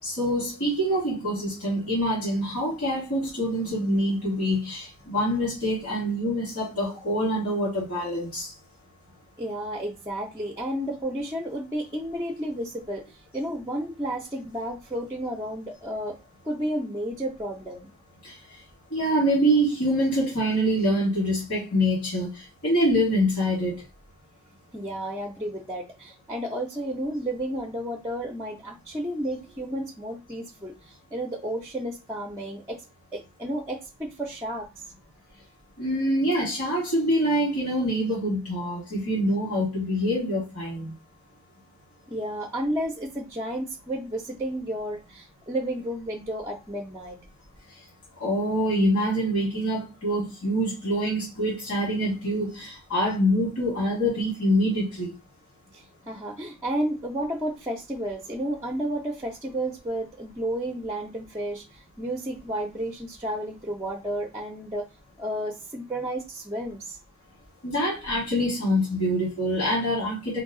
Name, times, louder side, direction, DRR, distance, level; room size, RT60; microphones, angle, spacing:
voice 1, 0.0-8.5 18.2-18.4 18.9-23.8 35.8-40.9 48.2-55.1 67.6-70.4, equal, 80° left, 2.2 m, -25 dB
voice 2, 9.4-16.2 16.4-17.9 24.7-32.8 33.1-34.7 42.1-47.2 55.7-64.9 65.2-67.0, right 1 dB, 15° right, 0.5 m, -32 dB
4.6 x 2.3 x 3.6 m
head